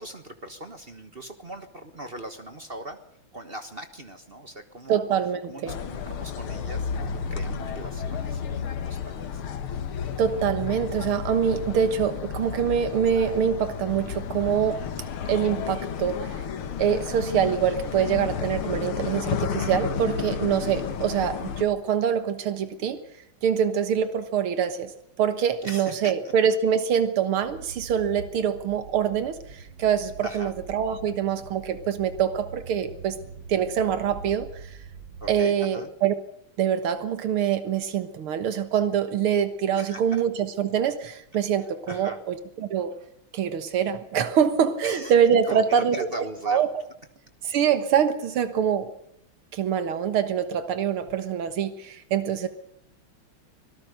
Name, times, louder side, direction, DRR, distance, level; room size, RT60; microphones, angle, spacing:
voice 1, 0.0-3.0 3.3-5.0 5.5-9.4 25.6-26.3 30.2-30.5 35.2-35.9 39.8-40.0 41.9-42.2 44.8-45.1 45.5-46.6, right 1 dB, 30° right, 8 dB, 1.4 m, -39 dB
voice 2, 4.9-5.8 10.2-14.8 15.3-16.5 16.8-23.0 23.4-24.9 25.2-33.2 33.5-34.8 35.3-36.1 36.6-43.0 43.3-46.1 46.5-46.7 47.4-48.9 49.5-52.5, right 8 dB, 90° right, 10 dB, 2.3 m, -25 dB
sound 1, 5.7-21.7, left 7 dB, 85° left, 2.2 m, -32 dB
sound 2, 27.4-35.4, right 5 dB, 60° right, 1.9 m, -43 dB
24.5 x 18.5 x 6.6 m, 0.78 s
omnidirectional pair, 2.3 m